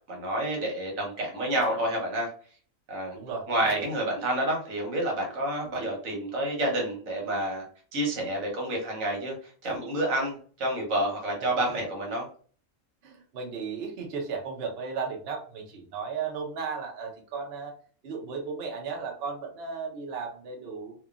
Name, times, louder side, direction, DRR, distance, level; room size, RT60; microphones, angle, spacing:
voice 1, 0.1-2.3 2.9-3.2 3.5-7.6 7.9-9.4 9.6-12.3, right 1 dB, 80° right, 0 dB, 1.4 m, -29 dB
voice 2, 3.1-3.5 13.0-17.7 18.0-20.9, right 5 dB, 55° right, 1 dB, 0.8 m, -35 dB
2.8 x 2.2 x 2.4 m, 0.43 s
omnidirectional pair, 1.4 m